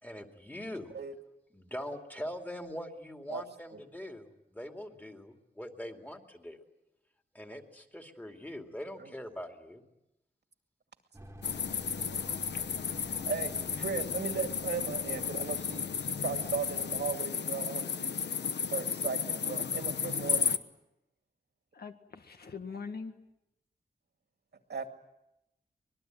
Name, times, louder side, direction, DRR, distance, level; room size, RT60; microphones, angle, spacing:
voice 1, 0.0-0.9 1.5-6.6 7.3-9.8, equal, 10° left, 4 dB, 2.5 m, -42 dB
sound 1, 11.1-17.2, equal, 15° right, 1.5 m, -50 dB
sound 2, 11.4-20.6, left 6 dB, 85° left, 1.1 m, -33 dB
voice 2, 13.3-18.1 18.7-20.5 24.7-24.9, right 5 dB, 75° right, 6 dB, 2.4 m, -37 dB
voice 3, 21.7-23.1, left 5 dB, 65° left, 6 dB, 1.9 m, -42 dB
24.5 x 21.0 x 9.2 m, 0.88 s
wide cardioid pair, 125°, 17 cm